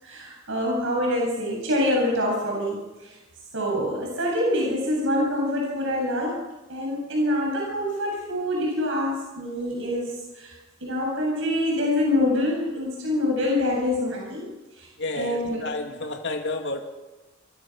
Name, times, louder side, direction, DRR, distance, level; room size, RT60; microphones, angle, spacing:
voice 1, 0.0-3.2 3.5-10.5 10.8-14.5 14.8-14.9 15.1-15.7, left 1 dB, 65° right, -1 dB, 7.8 m, -26 dB
voice 2, 15.0-16.9, left 2 dB, 60° left, 3 dB, 2.6 m, -30 dB
28.5 x 25.5 x 6.2 m, 1.1 s
head